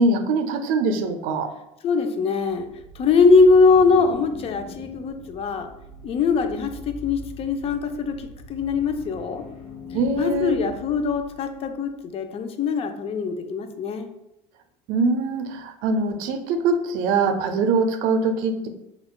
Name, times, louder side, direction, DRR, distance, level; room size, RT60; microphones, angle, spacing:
voice 1, 0.0-1.5 9.9-10.6 14.9-18.7, right 3 dB, 70° right, 8 dB, 0.5 m, -23 dB
voice 2, 1.8-2.7 3.0-5.7 6.0-9.4 10.2-14.1, left 4 dB, 40° left, 7 dB, 0.5 m, -21 dB
sound 1, 2.4-11.7, left 2 dB, 70° left, 1.1 m, -41 dB
5.5 x 2.3 x 2.3 m, 0.86 s
supercardioid pair, 100°, 15 cm